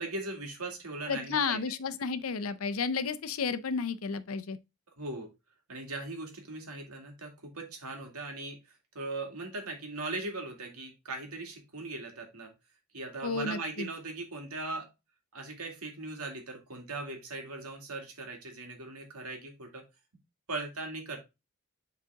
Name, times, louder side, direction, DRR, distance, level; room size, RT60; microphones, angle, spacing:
voice 1, 0.0-1.7 5.0-5.3 5.7-8.6 8.9-12.5 12.9-14.9 15.3-19.8 20.5-21.2, right 2 dB, 85° right, 2.2 m, -39 dB
voice 2, 1.1-4.6 13.2-13.9, left 5 dB, 70° left, 0.6 m, -32 dB
7.5 x 4.1 x 3.5 m
head